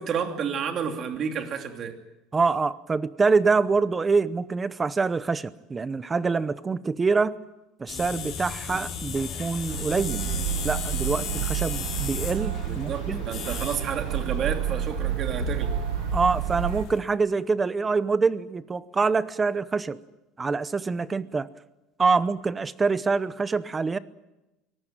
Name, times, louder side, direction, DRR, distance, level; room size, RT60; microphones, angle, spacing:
voice 1, 0.0-1.9 12.6-15.7, right 7 dB, 35° right, 5 dB, 2.9 m, -31 dB
voice 2, 2.3-7.4 7.8-13.2 16.1-20.0 20.4-21.5 22.0-24.0, right 4 dB, 15° right, 16 dB, 0.8 m, -25 dB
sound 1, 7.9-14.5, left 7 dB, 40° left, 4.9 m, -35 dB
sound 2, 9.7-16.8, right 12 dB, 90° right, 1.1 m, -30 dB
sound 3, 10.2-17.0, left 12 dB, 60° left, 1.8 m, -42 dB
23.5 x 19.0 x 9.1 m, 0.99 s
cardioid pair, 155°, 0 cm